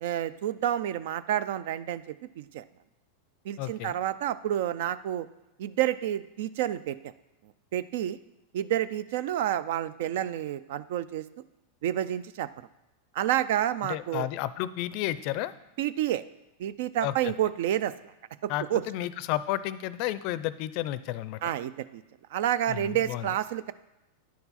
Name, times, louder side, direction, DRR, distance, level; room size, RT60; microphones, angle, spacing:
voice 1, 0.0-2.0 2.4-2.6 3.4-5.3 5.6-7.0 7.7-8.2 8.5-11.2 11.8-12.5 13.1-14.3 15.8-16.2 16.6-18.1 18.4-18.8 21.4-22.0 22.3-23.7, right 11 dB, 70° right, 16 dB, 0.3 m, -29 dB
voice 2, 3.6-3.9 13.8-15.5 17.0-17.3 18.5-21.4 22.7-23.3, left 14 dB, 55° left, 16 dB, 0.4 m, -32 dB
10.0 x 4.5 x 4.2 m, 0.93 s
hypercardioid pair, 115°, 0 cm